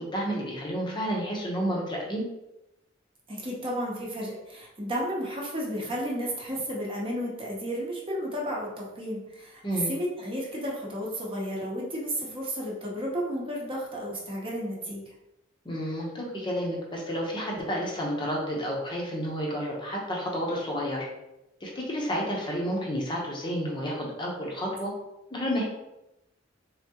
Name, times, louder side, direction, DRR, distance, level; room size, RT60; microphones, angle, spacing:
voice 1, 0.0-2.2 9.6-9.9 15.6-21.1 21.6-24.9 25.3-25.6, equal, 25° left, -2 dB, 0.7 m, -30 dB
voice 2, 3.3-15.1, equal, 30° right, -3 dB, 0.9 m, -32 dB
3.5 x 3.5 x 2.8 m, 0.93 s
head